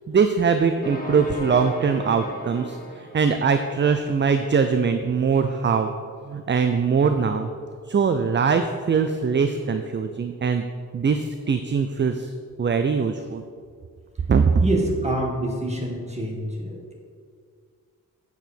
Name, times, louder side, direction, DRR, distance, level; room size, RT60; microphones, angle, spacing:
voice 1, 0.1-5.9 6.3-7.5 7.9-10.6 10.9-12.3 12.6-13.4 14.3-14.5, right 5 dB, 35° right, 7 dB, 0.4 m, -22 dB
sound 1, 0.8-3.8, right 1 dB, 25° left, 1.2 m, -36 dB
voice 2, 14.2-16.9, right 1 dB, 20° right, -2 dB, 1.8 m, -27 dB
8.3 x 7.0 x 4.4 m, 2.1 s
wide cardioid pair, 100°, 34 cm